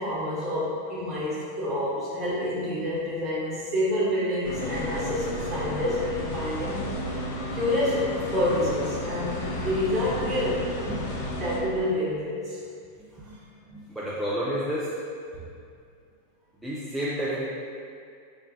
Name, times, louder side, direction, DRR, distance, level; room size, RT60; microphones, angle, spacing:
voice 1, 0.0-6.8 7.5-11.0 11.4-12.6, left 1 dB, 25° right, -7 dB, 1.2 m, -28 dB
sound 1, 4.4-11.6, left 1 dB, 50° left, 0.7 m, -32 dB
voice 2, 13.7-14.8 16.6-17.5, equal, 5° right, -9 dB, 0.5 m, -30 dB
3.6 x 3.2 x 3.3 m, 2.3 s
figure-of-eight pair, 90°, 0 cm